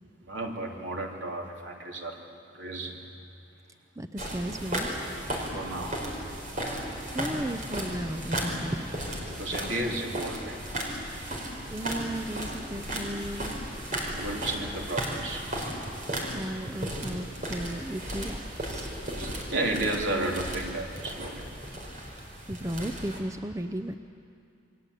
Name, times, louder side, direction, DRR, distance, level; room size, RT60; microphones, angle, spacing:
voice 1, 0.2-2.2 2.5-3.0 5.5-6.0 9.3-10.6 14.1-15.5 19.1-21.5, right 2 dB, 75° right, 0 dB, 3.3 m, -33 dB
voice 2, 4.0-4.9 7.1-9.0 11.7-13.6 15.6-15.7 16.3-18.9 22.5-24.0, right 1 dB, 15° right, 7 dB, 0.6 m, -35 dB
sound 1, 4.2-23.2, right 1 dB, 45° right, 4.7 m, -35 dB
28.0 x 23.0 x 8.4 m, 2.5 s
head